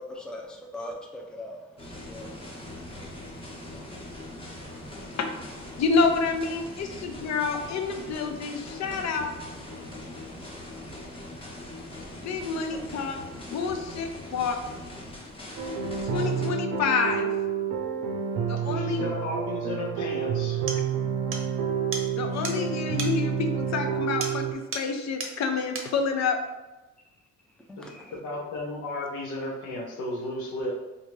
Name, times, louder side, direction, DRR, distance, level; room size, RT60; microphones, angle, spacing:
voice 1, 0.0-1.6 1.9-2.3 2.6-2.7 12.7-13.1 27.7-28.1, left 1 dB, 5° left, 1 dB, 0.4 m, -41 dB
sound 1, 1.8-16.5, left 1 dB, 20° left, 0.8 m, -41 dB
voice 2, 5.8-9.3 12.2-13.2 13.5-14.6 16.0-17.3 18.5-19.0 22.2-26.4, left 4 dB, 60° left, 6 dB, 0.6 m, -28 dB
sound 2, 15.6-24.5, right 7 dB, 85° right, 0.6 m, -29 dB
voice 3, 18.7-20.6 27.8-30.8, left 2 dB, 85° left, -1 dB, 0.9 m, -34 dB
sound 3, 20.1-20.2 20.7-20.8 21.3-21.5 21.9-22.1 22.4-22.6 23.0-23.2 24.2-24.4 24.7-24.9 25.2-25.3 25.7-25.9, right 3 dB, 45° right, 0.7 m, -34 dB
3.3 x 2.6 x 3.1 m, 1.1 s
cardioid pair, 90°, 30 cm